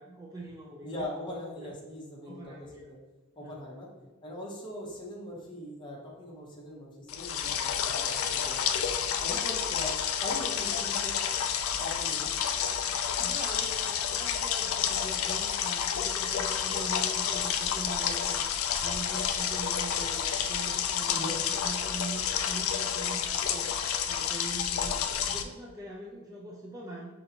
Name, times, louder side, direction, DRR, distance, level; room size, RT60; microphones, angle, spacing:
voice 1, 0.0-1.1 1.6-1.7 2.3-2.9 3.4-3.6 4.0-4.1 13.2-21.4 21.6-23.7 24.1-25.0 25.3-27.2, right 2 dB, 15° right, -3 dB, 0.3 m, -42 dB
voice 2, 0.8-3.0 3.4-3.9 4.2-8.9 9.2-11.2 11.8-12.3 21.1-21.4, left 1 dB, 20° left, -3 dB, 0.7 m, -41 dB
sound 1, 7.1-25.4, left 8 dB, 80° left, 0.3 m, -30 dB
5.2 x 2.5 x 2.8 m, 1.2 s
head